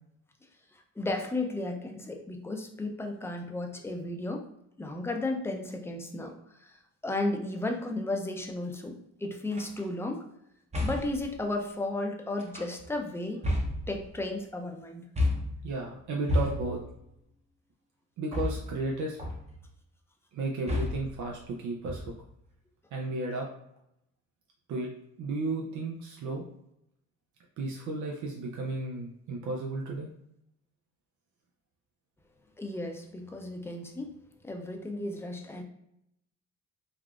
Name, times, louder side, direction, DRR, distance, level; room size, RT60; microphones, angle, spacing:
voice 1, 1.0-4.5 4.8-6.3 6.6-6.7 7.0-10.2 10.8-13.4 13.9-15.1 32.6-34.1 34.4-35.6, left 2 dB, 10° left, 3 dB, 0.5 m, -34 dB
sound 1, 9.5-9.8 10.7-11.3 12.4-12.9 13.4-14.3 15.2-15.7 16.3-16.9 18.3-18.9 19.2-19.7 20.7-21.2 21.9-22.4, left 1 dB, 20° right, 0.7 m, -31 dB
voice 2, 15.6-16.8 18.2-19.2 20.3-22.1 22.9-23.5 24.7-24.9 25.2-26.4 27.6-30.1, right 2 dB, 75° right, 0 dB, 0.6 m, -33 dB
3.5 x 2.4 x 2.3 m, 0.80 s
cardioid pair, 90°, 30 cm